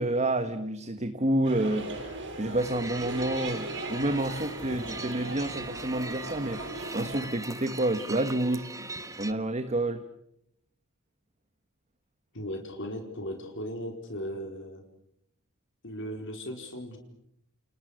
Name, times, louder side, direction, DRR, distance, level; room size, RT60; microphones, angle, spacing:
voice 1, 0.0-1.9 2.4-6.6 6.9-8.7 9.2-10.0, right 1 dB, 30° right, 8 dB, 1.4 m, -29 dB
sound 1, 1.4-7.2, right 2 dB, 60° right, 7.7 m, -38 dB
sound 2, 2.6-9.3, right 2 dB, 15° right, 1.4 m, -40 dB
voice 2, 12.3-14.8 15.8-17.0, equal, 60° left, 3 dB, 4.4 m, -37 dB
29.5 x 29.5 x 6.5 m, 0.76 s
head